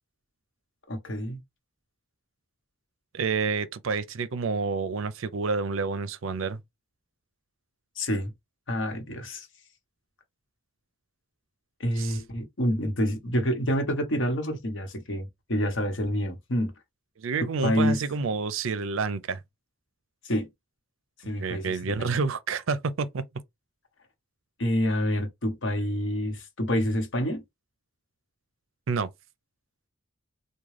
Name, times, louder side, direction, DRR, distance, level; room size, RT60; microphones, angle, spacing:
voice 1, 0.9-1.4 8.0-8.3 8.7-9.5 11.8-16.7 17.6-18.0 20.2-20.5 21.2-22.1 24.6-27.4, equal, 60° left, 1.1 m, -27 dB
voice 2, 3.1-6.6 12.0-12.2 17.2-19.4 21.4-23.2 28.9-29.1, right 4 dB, 70° right, 0.5 m, -29 dB
3.6 x 2.2 x 3.2 m
head